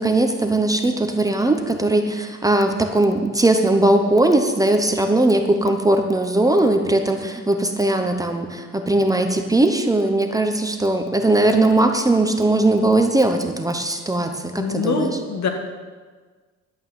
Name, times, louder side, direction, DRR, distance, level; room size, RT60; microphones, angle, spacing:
voice 1, 0.0-15.1, right 2 dB, 10° right, 5 dB, 0.9 m, -19 dB
voice 2, 14.5-15.5, left 3 dB, 70° left, 3 dB, 2.1 m, -23 dB
11.5 x 8.7 x 7.5 m, 1.4 s
cardioid pair, 145°, 29 cm